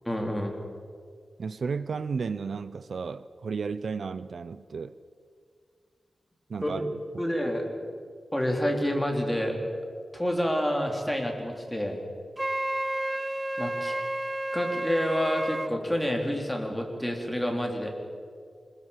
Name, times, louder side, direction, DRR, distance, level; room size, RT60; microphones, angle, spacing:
voice 1, 0.1-0.5 6.6-6.8 7.2-7.6 8.3-9.6 10.1-12.0 13.6-14.0 14.5-18.0, equal, 5° left, 2 dB, 4.1 m, -28 dB
voice 2, 1.4-4.9 6.5-7.3, right 5 dB, 75° right, 15 dB, 0.7 m, -33 dB
Wind instrument woodwind instrument, 12.4-15.7, right 1 dB, 15° right, 0.6 m, -31 dB
25.5 x 21.0 x 7.5 m, 2.1 s
wide cardioid pair, 80°, 0 cm